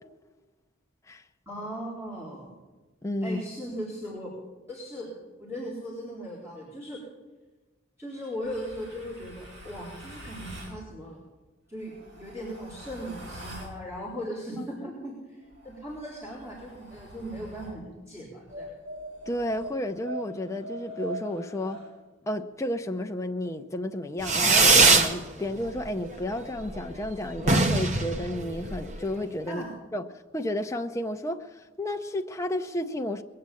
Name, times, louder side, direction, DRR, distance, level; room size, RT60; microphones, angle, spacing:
voice 1, 1.5-2.5 3.2-4.3 4.7-5.1 5.4-7.0 8.0-11.2 11.7-18.7 29.5-29.7, equal, 15° right, 4.0 m, -38 dB
voice 2, 3.0-3.4 19.3-21.8 22.3-29.6 29.9-30.0 30.3-33.2, left 1 dB, 15° left, 0.6 m, -32 dB
sound 1, 8.4-10.8 11.8-13.8 15.4-17.8 18.5-21.9, right 1 dB, 65° right, 4.9 m, -43 dB
Fireworks, 24.2-25.1 25.5-26.1 26.3-26.4 26.7-26.8 27.0-27.1 27.4-29.0, right 3 dB, 35° right, 1.1 m, -21 dB
21.0 x 7.7 x 8.4 m
head